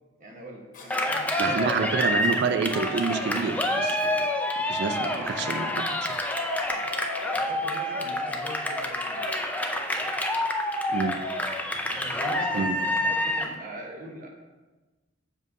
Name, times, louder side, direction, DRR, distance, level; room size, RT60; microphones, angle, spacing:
voice 1, 0.2-1.9 4.9-5.7 6.6-6.9 7.3-9.3 11.0-11.2 11.9-14.3, right 1 dB, 45° right, 0 dB, 1.1 m, -42 dB
Cough, 0.7-1.1 2.2-2.5 4.0-4.3 6.1-6.4, left 3 dB, 45° left, 1.0 m, -51 dB
Cheering, 0.9-13.5, left 1 dB, 10° left, 0.4 m, -28 dB
voice 2, 1.4-4.3 4.7-5.8 10.9-11.2 12.5-12.8, right 5 dB, 60° right, 8 dB, 0.4 m, -28 dB
7.3 x 5.2 x 2.6 m, 1.2 s
head